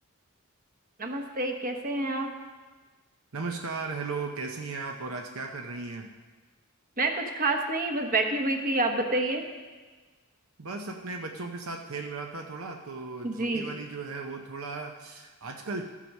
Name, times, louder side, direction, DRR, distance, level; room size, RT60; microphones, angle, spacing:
voice 1, 1.0-2.3 7.0-9.4 13.2-13.7, right 2 dB, 40° right, 4 dB, 1.1 m, -28 dB
voice 2, 3.3-6.1 10.6-15.8, right 4 dB, 70° right, 3 dB, 0.8 m, -36 dB
13.5 x 7.4 x 5.5 m, 1.3 s
head